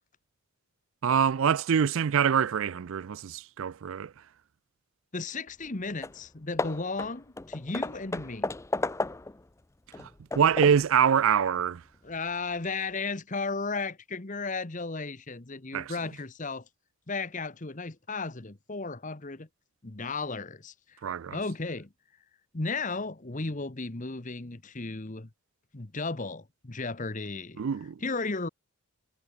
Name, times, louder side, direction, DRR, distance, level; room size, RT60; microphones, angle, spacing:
voice 1, 1.0-4.1 10.0-10.1 10.4-11.8 15.7-15.9 21.0-21.4 27.6-28.0, right 7 dB, 65° right, 0.4 m, -25 dB
voice 2, 5.1-8.5 12.0-16.6 17.1-19.5 19.8-20.7 21.3-21.9 22.5-25.3 25.7-27.6 28.0-28.5, left 3 dB, 35° left, 1.1 m, -34 dB
Hammer / Wood, 5.7-5.8 6.0-6.2 6.6-9.4 9.9-10.9, left 2 dB, 10° left, 0.4 m, -34 dB
head